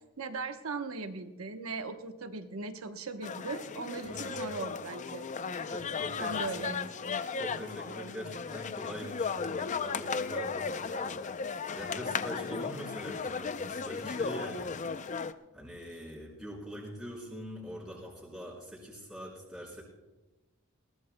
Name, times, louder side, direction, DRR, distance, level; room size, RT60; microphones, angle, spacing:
voice 1, 0.2-5.7 6.2-7.3, right 4 dB, 80° right, 7 dB, 1.0 m, -39 dB
sound 1, 3.2-15.3, left 5 dB, 35° left, 0.4 m, -36 dB
voice 2, 4.0-4.4 5.7-6.7 7.3-11.2 11.7-14.7 15.5-19.8, equal, ahead, -7 dB, 3.5 m, -43 dB
20.5 x 18.5 x 2.2 m, 1.1 s
head